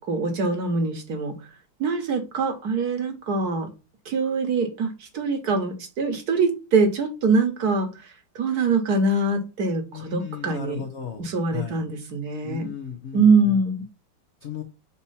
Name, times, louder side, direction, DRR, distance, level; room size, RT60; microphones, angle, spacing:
voice 1, 0.1-1.3 1.8-3.7 4.1-8.0 8.3-10.8 11.2-12.7 13.1-13.9, right 3 dB, 55° right, 6 dB, 1.4 m, -23 dB
voice 2, 9.9-11.3 11.5-11.8 12.4-13.6 14.4-14.6, left 8 dB, 55° left, 3 dB, 0.7 m, -35 dB
4.3 x 4.3 x 5.5 m, 0.29 s
omnidirectional pair, 2.2 m